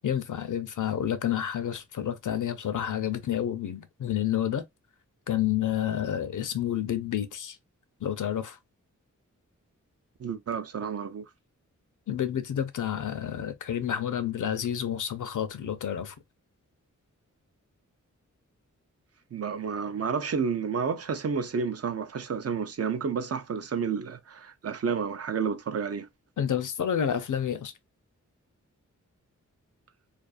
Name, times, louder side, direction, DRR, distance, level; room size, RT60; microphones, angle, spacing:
voice 1, 0.0-4.6 5.3-7.6 8.0-8.6 12.1-16.1 26.4-27.7, left 10 dB, 75° left, 0.6 m, -29 dB
voice 2, 10.2-11.2 19.3-26.1, right 6 dB, 50° right, 0.5 m, -30 dB
2.4 x 2.3 x 2.4 m
wide cardioid pair, 65°, 31 cm